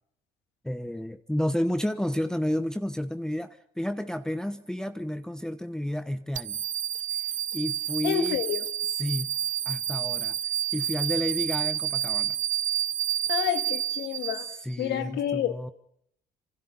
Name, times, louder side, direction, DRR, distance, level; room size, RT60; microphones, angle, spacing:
voice 1, 0.6-6.6 7.5-8.4 9.0-9.3 9.6-10.4 10.7-12.4 14.6-15.7, left 1 dB, 5° left, 1.0 m, -31 dB
sound 1, 6.3-14.8, right 10 dB, 50° right, 0.8 m, -29 dB
voice 2, 8.0-8.7 13.3-14.5 14.8-15.5, left 11 dB, 80° left, 2.2 m, -29 dB
28.0 x 26.0 x 4.2 m
cardioid pair, 110°, 17 cm